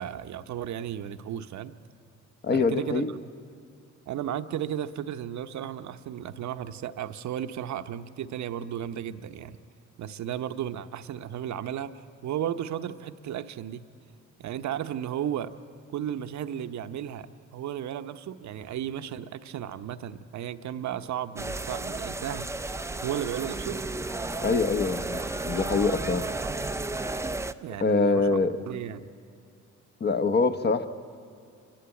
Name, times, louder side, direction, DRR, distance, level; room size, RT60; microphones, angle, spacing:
voice 1, 0.0-1.8 2.5-3.1 4.1-9.6 10.0-13.8 14.4-15.5 15.9-17.3 17.5-22.7 23.0-23.8 27.6-29.0, right 10 dB, 65° right, 10 dB, 0.9 m, -34 dB
voice 2, 2.4-3.1 24.4-26.3 27.8-28.6 30.0-30.9, left 4 dB, 35° left, 11 dB, 0.9 m, -24 dB
sound 1, 21.4-27.5, right 2 dB, 10° right, 0.5 m, -33 dB
27.0 x 12.0 x 9.0 m, 2.4 s
cardioid pair, 90°, 30 cm